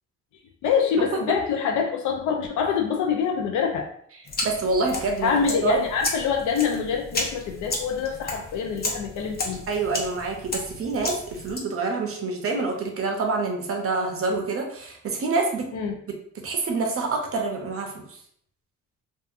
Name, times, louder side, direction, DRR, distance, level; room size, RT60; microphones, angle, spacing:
voice 1, 0.6-3.9 5.2-9.6 15.7-16.0, left 6 dB, 75° left, 2 dB, 0.5 m, -25 dB
sound 1, 4.3-11.6, left 2 dB, 30° left, 0.6 m, -33 dB
voice 2, 4.4-5.3 5.6-5.8 9.7-15.7 16.4-18.0, right 3 dB, 50° right, 2 dB, 0.6 m, -26 dB
2.7 x 2.3 x 2.4 m, 0.65 s
cardioid pair, 90°, 30 cm